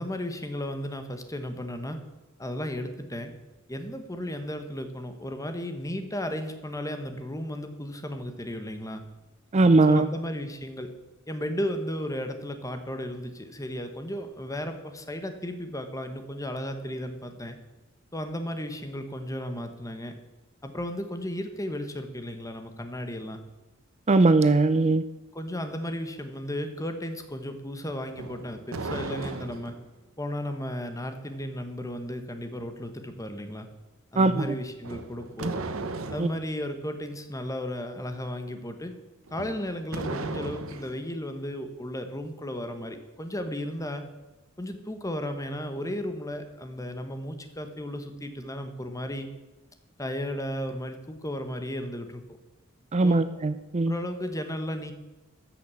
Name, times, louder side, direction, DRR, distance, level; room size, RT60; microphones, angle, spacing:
voice 1, 0.0-2.0 2.4-3.3 3.7-9.0 9.9-10.9 11.3-17.6 18.1-20.1 20.6-23.4 25.3-29.7 30.2-33.7 34.1-35.6 36.1-38.9 39.3-44.0 44.6-49.3 50.0-52.2 53.0-53.2 53.9-54.9, left 1 dB, 15° left, 7 dB, 1.3 m, -34 dB
voice 2, 9.5-10.1 24.1-25.0 34.2-34.4 35.4-35.5 36.2-36.3 52.9-53.9, right 3 dB, 30° right, 11 dB, 0.5 m, -20 dB
sound 1, 28.1-29.9 34.8-36.4 39.3-41.0, right 3 dB, 70° right, 1.0 m, -36 dB
14.0 x 6.5 x 8.4 m, 1.1 s
head